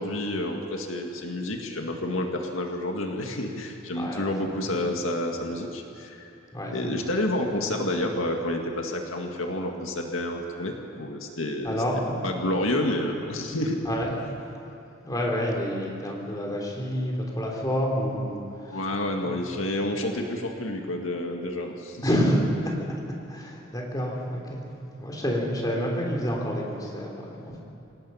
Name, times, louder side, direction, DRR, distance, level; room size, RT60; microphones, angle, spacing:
voice 1, 0.0-6.3 6.7-11.8 12.2-13.8 18.7-22.2, left 1 dB, 85° left, 2 dB, 2.0 m, -29 dB
voice 2, 3.9-4.8 6.5-7.1 11.6-12.1 13.9-14.1 15.0-18.4 18.6-18.8 22.0-22.4 23.3-24.6 25.0-27.6, equal, 20° left, -1 dB, 3.5 m, -28 dB
26.5 x 17.5 x 5.7 m, 2.8 s
head